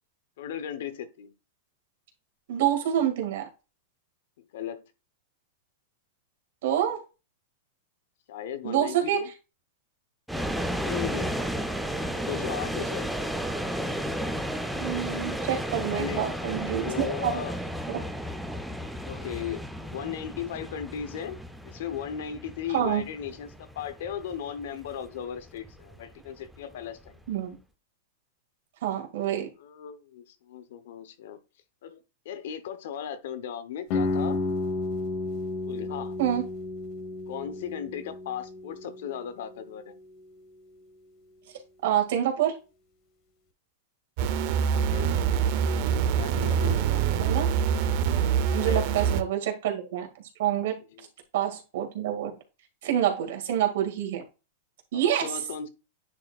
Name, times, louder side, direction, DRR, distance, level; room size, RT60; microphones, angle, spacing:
voice 1, 0.4-1.3 4.5-4.8 8.3-9.3 10.8-11.3 12.1-13.1 15.8-16.3 16.7-17.6 19.0-27.2 29.6-31.4 31.8-32.0 32.2-34.4 35.7-36.2 37.3-40.0 44.7-45.1 46.1-47.0 48.6-48.9 51.0-51.1 54.9-55.7, left 9 dB, 70° left, 0.8 m, -36 dB
voice 2, 2.5-3.5 6.6-7.0 8.6-9.2 14.8-17.4 17.9-18.0 22.7-23.0 27.3-27.6 28.8-29.5 36.2-36.4 41.8-42.6 47.2-47.5 48.5-50.1 50.4-50.8 51.3-52.3 52.8-54.2 54.9-55.3, right 10 dB, 70° right, 1.9 m, -27 dB
sound 1, 10.3-27.3, equal, ahead, 0.5 m, -33 dB
sound 2, 33.9-39.7, left 3 dB, 40° left, 1.1 m, -32 dB
sound 3, 44.2-49.2, right 7 dB, 50° right, 0.6 m, -25 dB
9.7 x 4.3 x 2.4 m
supercardioid pair, 150°, 0 cm